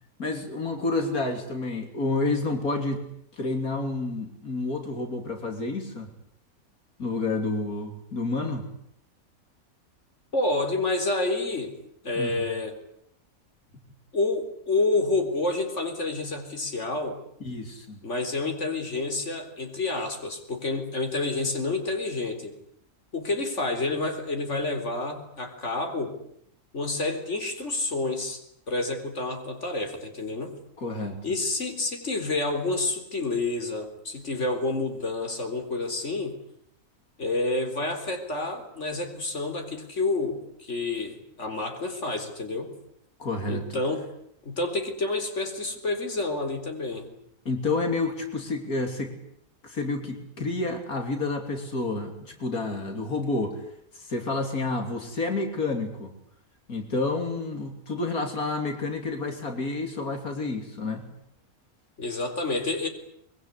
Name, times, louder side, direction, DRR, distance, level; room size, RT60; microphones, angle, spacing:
voice 1, 0.2-3.0 3.4-6.1 7.0-8.7 12.2-12.3 17.5-18.0 30.8-31.2 43.2-43.8 47.5-49.1 49.6-53.6 53.9-56.1 56.7-61.0, left 3 dB, 85° left, 4 dB, 3.6 m, -29 dB
voice 2, 10.3-11.7 12.0-12.8 14.1-17.2 18.0-22.5 23.1-26.2 26.7-28.4 28.7-30.5 31.2-36.4 37.2-42.7 43.5-44.1 44.4-47.1 62.0-62.9, left 2 dB, 55° left, 5 dB, 4.2 m, -29 dB
24.0 x 23.0 x 9.8 m, 0.72 s
omnidirectional pair, 1.5 m